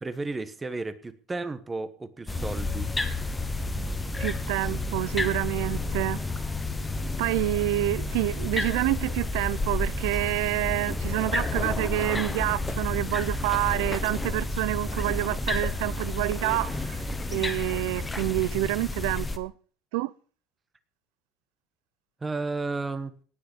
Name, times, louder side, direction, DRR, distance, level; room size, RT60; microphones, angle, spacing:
voice 1, 0.0-2.9 4.6-4.8 22.2-23.1, right 3 dB, 10° right, 1.1 m, -33 dB
sound 1, 2.3-19.4, left 2 dB, 10° left, 1.1 m, -30 dB
voice 2, 4.2-6.2 7.2-17.0 17.3-19.5 19.9-20.1, right 19 dB, 80° right, 0.6 m, -28 dB
18.0 x 6.5 x 6.7 m
cardioid pair, 155°, 0 cm